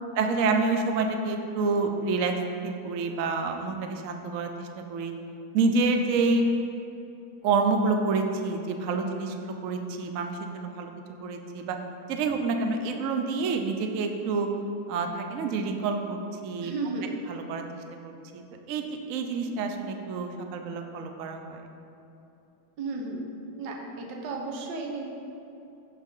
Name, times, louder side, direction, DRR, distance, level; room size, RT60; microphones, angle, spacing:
voice 1, 0.2-2.3 2.6-5.1 5.5-6.5 7.4-10.9 11.2-11.8 12.1-14.5 14.9-16.7 17.3-17.6 18.0-21.6, right 4 dB, 90° right, 4 dB, 0.7 m, -28 dB
voice 2, 16.6-17.1 22.8-23.2 23.6-25.1, right 3 dB, 60° right, 0 dB, 1.5 m, -33 dB
14.5 x 5.0 x 3.8 m, 2.9 s
omnidirectional pair, 2.4 m